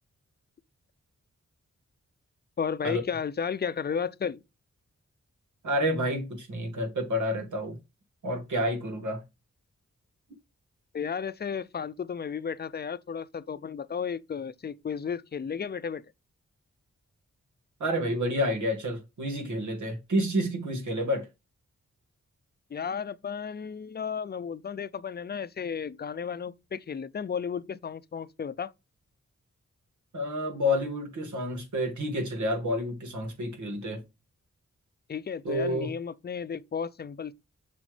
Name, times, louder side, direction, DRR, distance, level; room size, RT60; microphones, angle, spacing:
voice 1, 2.6-4.4 10.9-16.0 22.7-28.7 35.1-37.3, left 6 dB, 35° left, 0.5 m, -33 dB
voice 2, 5.6-7.8 8.2-9.2 17.8-21.3 30.1-34.0 35.4-35.9, equal, 85° right, 2.0 m, -29 dB
7.3 x 6.1 x 3.3 m
wide cardioid pair, 110°, 29 cm